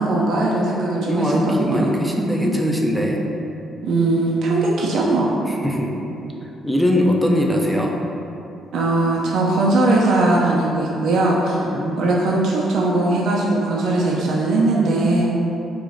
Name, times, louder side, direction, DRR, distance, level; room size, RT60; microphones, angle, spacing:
voice 1, 0.0-1.3 1.6-1.8 3.8-5.4 8.7-11.7 12.0-15.2, right 2 dB, 75° right, -3 dB, 0.4 m, -19 dB
voice 2, 1.1-3.2 5.5-5.9 6.6-7.9 11.6-12.2, equal, ahead, -1 dB, 0.4 m, -21 dB
4.7 x 2.5 x 2.6 m, 2.8 s
cardioid pair, 90°, 0 cm